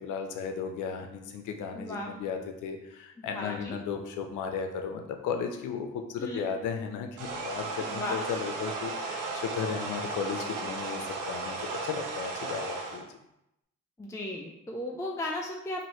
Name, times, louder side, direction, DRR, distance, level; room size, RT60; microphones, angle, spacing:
voice 1, 0.0-13.2, left 6 dB, 80° left, 5 dB, 0.6 m, -35 dB
voice 2, 1.7-2.1 3.3-3.8 6.2-6.5 7.8-8.2 14.0-15.9, left 1 dB, 10° left, -1 dB, 0.4 m, -35 dB
sound 1, 7.2-13.0, right 3 dB, 85° right, 0.7 m, -35 dB
3.0 x 2.7 x 4.3 m, 0.84 s
cardioid pair, 90°, 30 cm